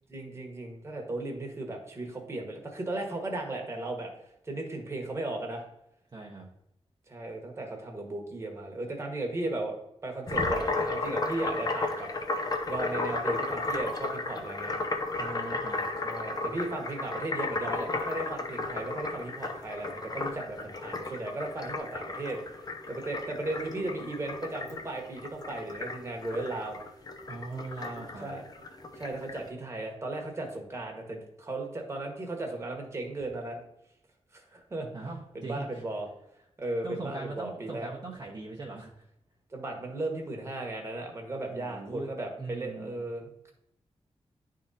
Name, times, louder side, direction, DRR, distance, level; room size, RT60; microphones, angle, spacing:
voice 1, 0.1-4.1 4.4-5.6 7.1-9.7 10.0-12.1 12.7-14.8 16.0-22.4 22.9-26.8 28.2-28.4 29.0-33.6 34.3-34.9 35.3-36.1 36.6-37.9 39.5-43.5, right 2 dB, 25° right, 1 dB, 1.4 m, -36 dB
voice 2, 6.1-6.5 15.2-15.8 27.3-28.3 34.9-35.8 36.8-39.1 41.5-42.1 42.4-43.0, right 3 dB, 40° right, -4 dB, 1.0 m, -40 dB
sound 1, 10.3-29.4, left 3 dB, 35° left, 0.8 m, -34 dB
10.0 x 3.8 x 4.1 m, 0.80 s
wide cardioid pair, 165°, 11 cm